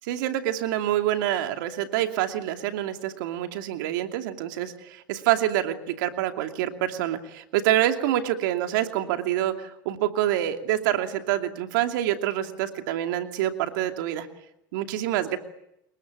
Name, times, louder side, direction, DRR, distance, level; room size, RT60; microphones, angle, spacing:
voice 1, 0.1-14.3 14.7-15.4, right 12 dB, 75° right, 6 dB, 2.6 m, -26 dB
27.5 x 22.5 x 8.9 m, 0.82 s
hypercardioid pair, 90°, 11 cm